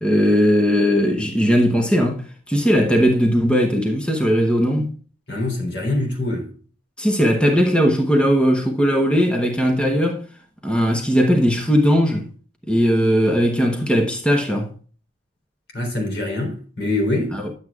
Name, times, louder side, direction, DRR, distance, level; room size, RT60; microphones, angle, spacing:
voice 1, 0.0-4.9 7.0-10.2 10.6-12.3 12.7-14.7 17.3-17.5, equal, 5° left, 1.0 m, -18 dB
voice 2, 5.3-6.5 15.7-17.4, left 2 dB, 65° left, 3.6 m, -24 dB
10.5 x 8.0 x 2.4 m
head